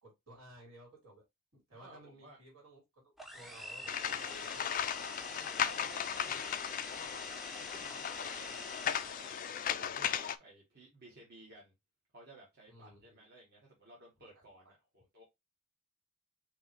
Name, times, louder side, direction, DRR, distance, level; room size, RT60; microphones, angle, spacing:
voice 1, 0.0-1.2 1.5-4.9 6.1-6.4 12.7-13.3 14.4-14.7, right 1 dB, 70° right, 3.3 m, -57 dB
voice 2, 1.7-2.4 5.3-7.2 7.6-11.7 12.1-15.2, right 1 dB, 45° right, 1.7 m, -56 dB
sound 1, 3.2-9.9, left 1 dB, ahead, 0.6 m, -47 dB
sound 2, 3.9-10.4, left 8 dB, 35° left, 0.3 m, -37 dB
5.2 x 3.2 x 3.1 m
head